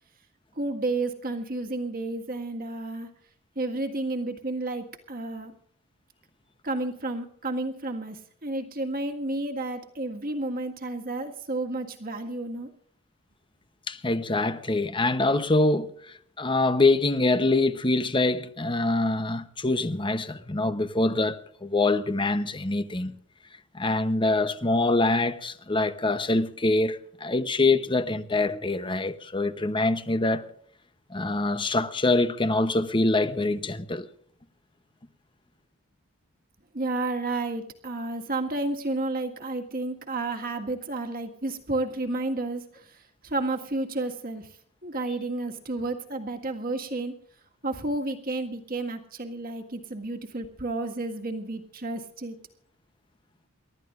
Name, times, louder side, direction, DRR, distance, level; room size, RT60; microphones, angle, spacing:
voice 1, 0.6-3.1 3.6-5.5 6.6-12.7 36.7-44.5 44.8-47.1 47.6-52.4, right 2 dB, 40° right, 1.8 m, -31 dB
voice 2, 13.9-15.9 16.4-23.1 23.7-30.5 31.1-34.1, left 2 dB, 20° left, 0.8 m, -24 dB
29.0 x 13.0 x 2.5 m
head